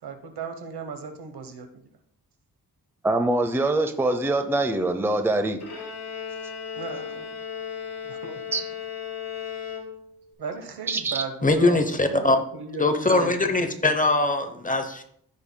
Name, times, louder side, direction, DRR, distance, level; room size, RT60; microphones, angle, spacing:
voice 1, 0.0-1.7 6.8-7.4 8.0-8.4 10.4-13.8, right 5 dB, 75° right, 6 dB, 1.1 m, -36 dB
voice 2, 3.0-5.6 8.5-8.6 10.9-11.2, right 2 dB, 5° right, 7 dB, 0.6 m, -24 dB
Bowed string instrument, 5.6-10.3, left 7 dB, 80° left, 3.0 m, -36 dB
voice 3, 11.4-12.4 12.8-15.0, left 2 dB, 20° left, 6 dB, 0.8 m, -22 dB
14.5 x 5.4 x 2.2 m, 0.70 s
wide cardioid pair, 110°, 39 cm